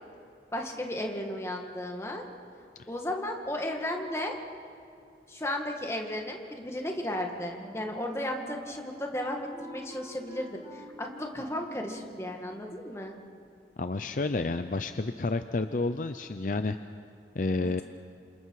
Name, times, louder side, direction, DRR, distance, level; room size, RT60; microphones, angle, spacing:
voice 1, 0.5-2.3 2.9-4.4 5.3-13.2 17.6-17.8, left 1 dB, 15° left, 2 dB, 1.9 m, -34 dB
Wind instrument woodwind instrument, 7.6-13.1, equal, 15° right, 3.6 m, -47 dB
voice 2, 13.8-16.8 17.3-17.8, left 3 dB, 50° left, 9 dB, 0.6 m, -30 dB
28.0 x 27.0 x 4.8 m, 2.5 s
head